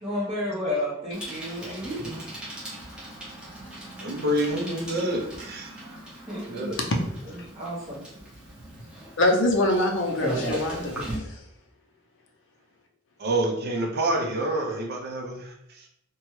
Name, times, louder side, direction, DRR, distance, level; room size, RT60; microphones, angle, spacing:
voice 1, 0.0-2.3 6.2-6.7 7.5-8.0, left 1 dB, 25° right, -10 dB, 1.0 m, -31 dB
Bicycle, 1.1-11.2, right 1 dB, 5° right, 0.9 m, -38 dB
voice 2, 4.0-6.0 6.5-6.8 13.2-15.9, right 1 dB, 50° right, 2 dB, 0.6 m, -28 dB
voice 3, 9.2-11.4, left 1 dB, 65° left, 1 dB, 0.6 m, -24 dB
2.9 x 2.3 x 3.1 m, 0.77 s
head